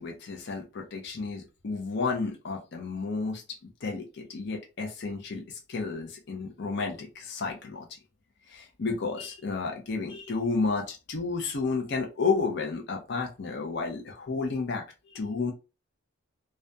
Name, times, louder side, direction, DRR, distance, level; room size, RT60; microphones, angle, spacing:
voice 1, 0.0-7.9 8.5-15.5, left 4 dB, 55° left, 2 dB, 0.5 m, -32 dB
2.4 x 2.2 x 2.6 m, 0.30 s
head